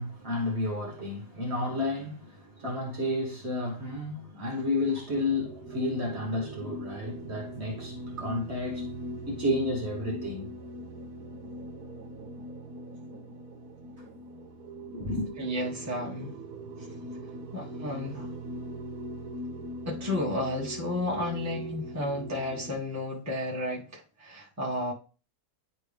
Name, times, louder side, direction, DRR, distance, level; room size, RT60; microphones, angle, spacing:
voice 1, 0.0-8.9 9.3-10.5 14.9-15.3, left 2 dB, 45° right, 1.5 m, -31 dB
sound 1, 5.1-22.7, right 1 dB, 65° right, 1.6 m, -41 dB
voice 2, 15.4-16.3 17.5-18.3 19.8-24.9, left 1 dB, 10° right, 1.3 m, -32 dB
9.9 x 3.4 x 3.4 m
omnidirectional pair, 1.7 m